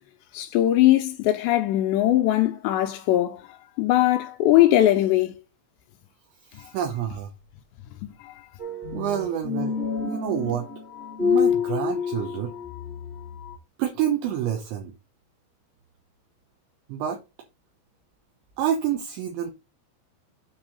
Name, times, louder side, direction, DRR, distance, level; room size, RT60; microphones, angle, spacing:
voice 1, 0.3-3.4 3.8-5.3 8.0-8.3, left 14 dB, 80° left, 2.6 m, -20 dB
voice 2, 6.5-7.3 8.9-10.7 11.2-12.5 13.8-14.9 16.9-17.2 18.6-19.5, right 10 dB, 75° right, 3.1 m, -28 dB
sound 1, 8.6-13.6, left 6 dB, 5° left, 1.2 m, -28 dB
8.9 x 4.0 x 5.4 m
omnidirectional pair, 5.8 m